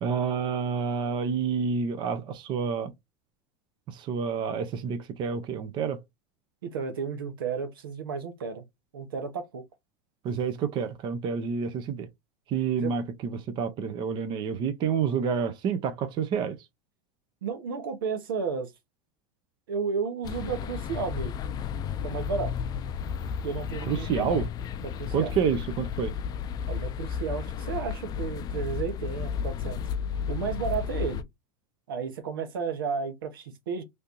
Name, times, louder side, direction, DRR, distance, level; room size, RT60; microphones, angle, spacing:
voice 1, 0.0-2.9 3.9-6.0 10.2-12.1 12.5-16.6 23.9-24.5 25.1-26.1, right 6 dB, 45° right, 0.7 m, -28 dB
voice 2, 6.6-8.6 8.9-9.6 12.7-13.0 17.4-18.7 19.7-21.3 22.0-22.5 23.4-24.4 24.8-25.3 26.7-29.8 30.3-31.3 31.9-33.8, right 5 dB, 90° right, 0.9 m, -32 dB
sound 1, 20.2-31.2, left 7 dB, 35° left, 0.4 m, -33 dB
3.2 x 2.7 x 2.9 m
supercardioid pair, 110°, 11 cm